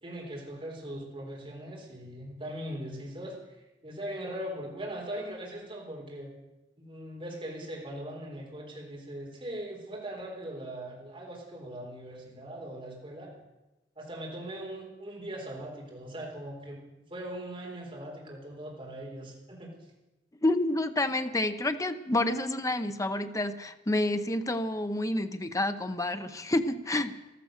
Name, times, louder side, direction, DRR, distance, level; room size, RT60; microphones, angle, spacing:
voice 1, 0.0-3.4 3.8-6.3 6.8-13.3 14.0-16.8 17.1-19.7, right 1 dB, 30° right, -2 dB, 4.0 m, -40 dB
voice 2, 20.4-27.2, left 1 dB, 20° left, 10 dB, 0.7 m, -29 dB
14.5 x 13.0 x 6.5 m, 1.0 s
head